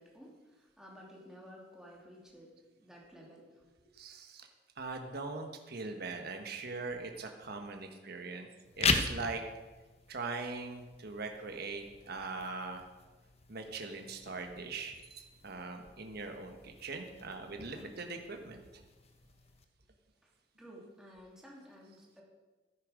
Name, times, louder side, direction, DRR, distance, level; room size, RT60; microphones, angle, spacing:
voice 1, 0.0-4.0 20.2-22.2, equal, 5° right, -3 dB, 2.7 m, -54 dB
voice 2, 3.9-4.5 4.8-8.5 8.8-9.4 10.1-12.9 13.5-18.8, right 3 dB, 55° right, 5 dB, 1.3 m, -41 dB
sound 1, 8.6-19.6, left 4 dB, 35° left, 0.9 m, -40 dB
13.5 x 10.0 x 5.1 m, 1.2 s
head